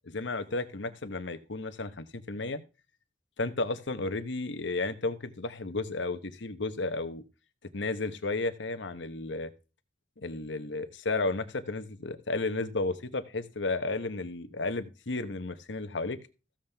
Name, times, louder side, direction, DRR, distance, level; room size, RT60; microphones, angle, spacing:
voice 1, 0.1-2.6 3.4-7.2 7.7-9.5 10.2-16.2, left 3 dB, 85° left, 11 dB, 1.0 m, -33 dB
15.0 x 7.3 x 3.5 m, 0.31 s
head